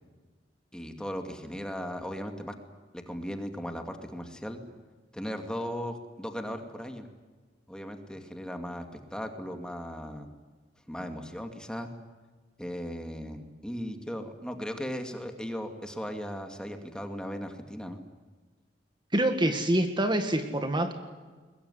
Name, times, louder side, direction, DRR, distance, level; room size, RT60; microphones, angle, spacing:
voice 1, 0.7-2.5 2.9-4.6 5.1-7.1 7.7-10.3 10.9-11.9 12.6-18.0, equal, 5° left, 5 dB, 2.4 m, -37 dB
voice 2, 19.1-20.9, right 1 dB, 25° right, 7 dB, 1.9 m, -26 dB
22.0 x 22.0 x 10.0 m, 1.4 s
head